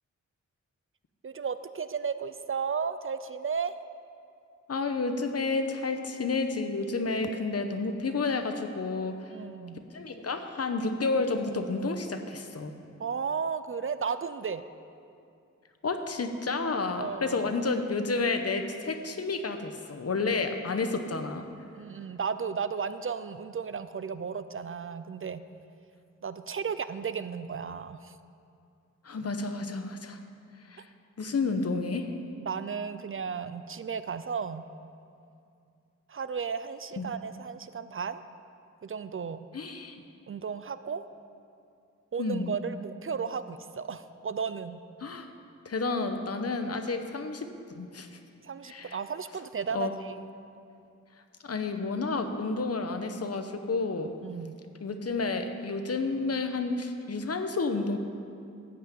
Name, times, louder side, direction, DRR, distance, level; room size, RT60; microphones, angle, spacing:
voice 1, 1.2-3.8 9.3-9.9 13.0-14.6 17.0-17.5 21.7-25.4 26.2-28.2 32.5-34.7 36.1-38.2 38.8-39.5 40.3-41.1 42.1-44.8 48.4-50.2 54.2-54.6, right 6 dB, 45° right, 12 dB, 0.4 m, -34 dB
voice 2, 4.7-9.2 9.9-12.7 15.8-21.4 29.0-30.2 30.7-30.9 31.2-32.1 37.0-37.1 39.5-40.0 42.2-42.5 45.0-45.3 45.6-47.5 47.7-48.1 48.6-49.0 49.7-49.9 51.4-54.1 54.8-58.0, left 3 dB, 55° left, 6 dB, 1.0 m, -30 dB
14.5 x 5.9 x 8.4 m, 2.5 s
wide cardioid pair, 120°, 29 cm